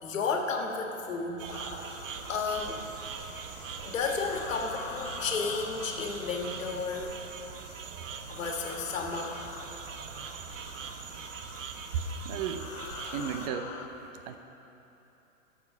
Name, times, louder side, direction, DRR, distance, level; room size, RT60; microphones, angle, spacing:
voice 1, 0.0-1.4 2.3-2.8 3.8-7.1 8.3-9.4, left 4 dB, 70° left, 2 dB, 1.8 m, -32 dB
sound 1, 1.4-13.5, right 6 dB, 65° right, 0.9 m, -42 dB
sound 2, 1.5-13.9, left 6 dB, 20° left, 0.5 m, -45 dB
voice 2, 12.2-12.7 13.1-13.8 14.3-14.4, right 8 dB, 30° right, 8 dB, 0.7 m, -34 dB
13.0 x 7.6 x 5.5 m, 3.0 s
hypercardioid pair, 130°, 41 cm